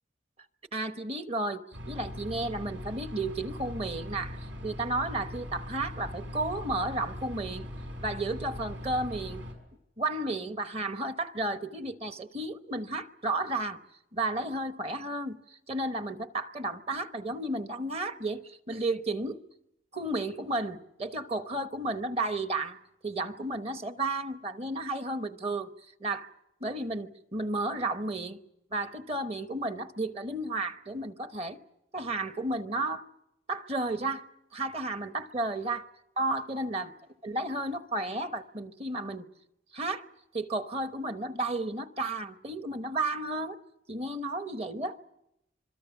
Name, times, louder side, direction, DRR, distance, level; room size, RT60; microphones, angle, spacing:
voice 1, 0.7-7.7 8.0-9.4 10.0-13.8 14.1-19.4 19.9-22.8 23.0-25.7 26.0-26.3 26.6-28.4 28.7-31.6 31.9-33.0 33.5-34.3 34.5-35.9 36.2-36.9 37.2-39.3 39.7-40.1 40.3-43.6 43.9-45.0, right 2 dB, 30° right, 1.0 m, -33 dB
sound 1, 1.7-9.5, left 1 dB, 70° right, 5.8 m, -40 dB
26.0 x 23.0 x 7.2 m
head